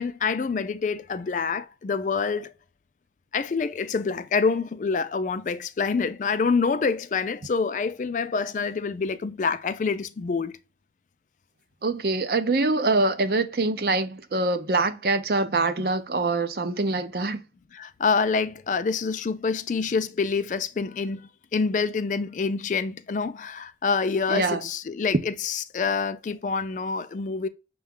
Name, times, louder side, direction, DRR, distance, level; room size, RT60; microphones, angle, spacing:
voice 1, 0.0-2.5 3.3-10.6 17.7-21.2 21.5-27.5, left 5 dB, 45° left, 0.3 m, -26 dB
voice 2, 11.8-17.4 24.3-24.7, right 3 dB, 60° right, 0.6 m, -24 dB
6.2 x 2.3 x 3.6 m
head